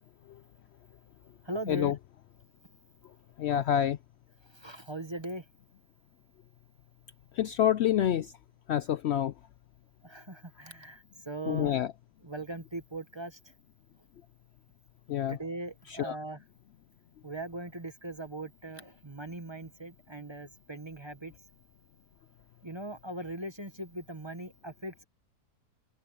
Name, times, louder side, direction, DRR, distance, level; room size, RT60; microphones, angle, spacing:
voice 1, 1.4-1.9 4.4-5.5 10.0-11.8 12.2-13.5 15.3-16.4 17.2-21.3 22.6-25.0, right 2 dB, 20° right, 0.9 m, -40 dB
voice 2, 3.4-4.0 7.4-8.3 8.7-9.3 11.5-11.9 15.1-15.4 16.0-16.1, left 10 dB, 90° left, 0.5 m, -27 dB
omnidirectional pair, 1.7 m